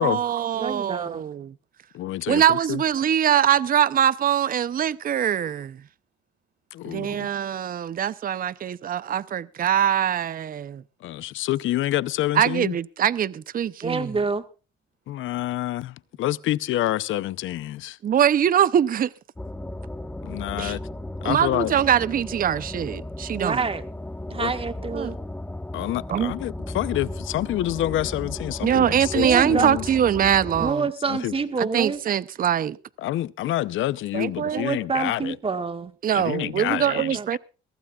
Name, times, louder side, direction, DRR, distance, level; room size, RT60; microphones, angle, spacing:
voice 1, 0.0-1.5 2.3-5.8 6.9-10.8 12.4-14.1 18.0-19.1 20.6-20.8 21.2-23.6 24.9-25.1 26.1-26.3 28.6-30.8 31.6-32.8 34.1-34.6 36.0-37.4, right 9 dB, 45° right, 0.6 m, -23 dB
voice 2, 0.6-1.2 13.8-14.4 23.4-23.8 24.3-25.2 29.2-29.7 30.6-32.0 34.5-35.9 36.7-36.8 37.1-37.3, right 4 dB, 30° right, 1.6 m, -27 dB
voice 3, 1.9-2.8 6.7-7.3 11.0-12.8 15.1-18.0 20.2-20.8 21.2-21.7 24.4-24.5 25.7-29.9 31.1-31.3 33.0-35.4 36.1-37.4, left 14 dB, 80° left, 0.7 m, -27 dB
sound 1, 19.4-30.7, left 1 dB, 10° left, 1.3 m, -35 dB
22.5 x 16.0 x 2.4 m
cardioid pair, 90°, 20 cm